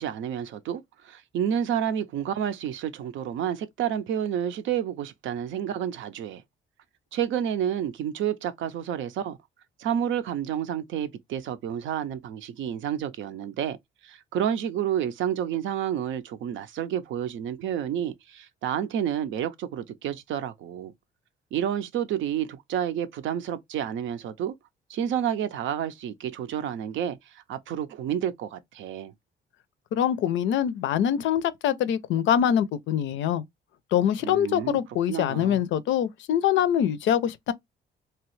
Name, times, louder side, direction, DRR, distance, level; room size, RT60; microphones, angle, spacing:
voice 1, 0.0-6.4 7.1-9.4 9.8-13.8 14.0-20.9 21.5-24.6 24.9-29.1 34.2-34.8 35.1-35.6, right 9 dB, 75° right, 0.5 m, -30 dB
voice 2, 29.9-33.4 33.9-37.5, left 9 dB, 75° left, 0.5 m, -24 dB
2.9 x 2.3 x 3.1 m
cardioid pair, 90°, 20 cm